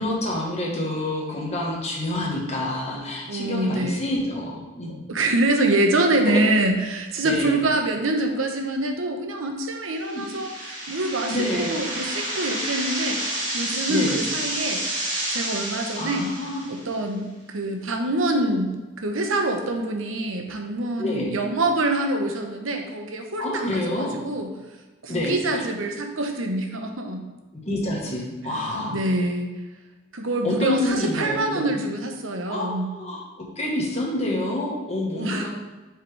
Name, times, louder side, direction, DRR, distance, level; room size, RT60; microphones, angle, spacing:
voice 1, 0.0-5.0 6.2-6.6 7.2-7.6 10.0-10.2 11.3-11.8 13.9-14.2 16.0-16.6 21.0-21.3 23.4-24.2 25.1-25.6 27.5-29.0 30.4-31.8 32.5-33.2 33.5-35.5, left 1 dB, 30° left, -3 dB, 1.4 m, -28 dB
voice 2, 3.3-4.1 5.1-14.8 15.3-16.3 16.7-24.5 25.0-27.2 28.9-29.6 30.1-32.9 35.1-35.5, right 2 dB, 90° right, 4 dB, 0.9 m, -25 dB
sound 1, 9.9-16.9, right 1 dB, 40° right, 1.9 m, -30 dB
7.5 x 4.9 x 3.3 m, 1.2 s
head